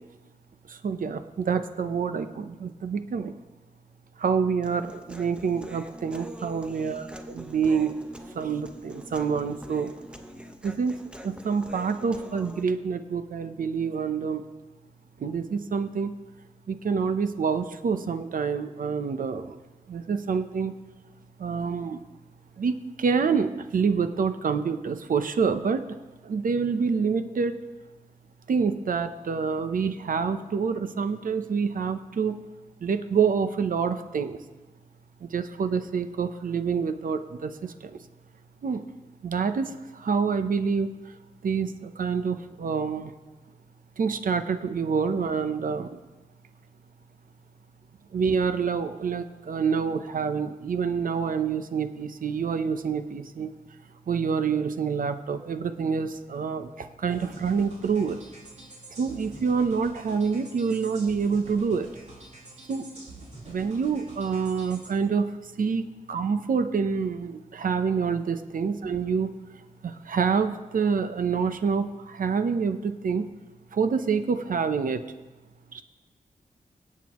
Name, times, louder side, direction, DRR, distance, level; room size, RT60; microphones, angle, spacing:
voice 1, 0.7-3.3 4.2-8.0 8.3-9.9 10.6-11.0 11.2-14.5 15.2-16.1 16.7-19.6 19.9-20.8 21.4-22.0 22.6-26.0 26.2-27.6 28.5-32.5 32.8-34.4 35.2-38.0 38.6-38.8 39.2-41.2 41.4-43.1 44.0-46.0 48.1-53.5 54.1-58.2 58.9-61.9 62.7-62.9 63.5-69.3 69.8-73.3 73.7-75.0 75.7-75.8, right 5 dB, 70° right, 10 dB, 0.8 m, -27 dB
Human voice, 4.6-12.6, equal, 5° right, 0.9 m, -44 dB
sound 1, 57.1-64.9, right 2 dB, 55° right, 3.8 m, -47 dB
25.0 x 8.3 x 3.1 m, 1.2 s
wide cardioid pair, 80°, 15 cm